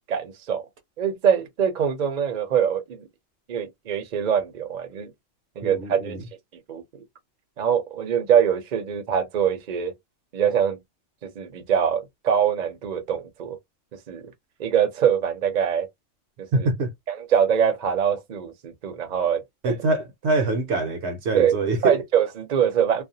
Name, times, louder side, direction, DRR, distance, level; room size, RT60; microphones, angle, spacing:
voice 1, 0.1-0.6 1.0-3.1 3.5-5.1 5.6-6.2 6.7-6.8 7.6-9.9 10.3-10.8 11.2-13.6 14.1-14.2 14.6-15.9 16.5-16.7 17.1-19.4 21.3-21.5 21.8-23.0, right 8 dB, 45° right, 0.7 m, -23 dB
voice 2, 5.6-6.2 16.5-16.9 19.6-22.0, right 3 dB, 65° right, 0.9 m, -25 dB
2.5 x 2.2 x 2.7 m
omnidirectional pair, 1.3 m